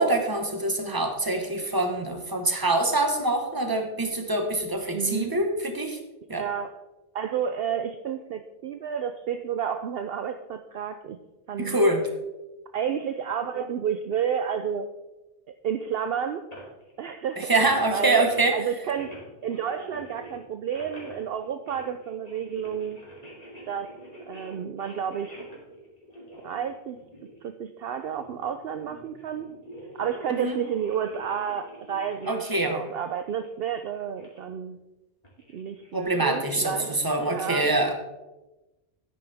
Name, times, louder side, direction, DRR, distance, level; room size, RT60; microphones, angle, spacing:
voice 1, 0.0-6.0 6.3-6.4 11.6-12.0 17.4-18.6 30.4-30.6 32.3-32.8 35.9-37.9, right 2 dB, 20° right, 4 dB, 1.3 m, -25 dB
voice 2, 4.9-5.4 6.3-6.8 7.1-11.2 11.5-11.8 12.7-14.9 15.6-16.4 17.0-17.5 17.9-19.2 19.4-23.0 23.7-23.9 24.3-25.3 26.4-27.0 27.4-29.5 29.9-34.8 35.5-37.7, right 8 dB, 60° right, 8 dB, 0.7 m, -31 dB
sound 1, 16.5-16.9 17.6-18.5 18.8-27.5 27.9-34.5 35.2-36.0, equal, 35° left, 2.9 m, -45 dB
12.0 x 10.0 x 3.5 m, 1.0 s
omnidirectional pair, 1.2 m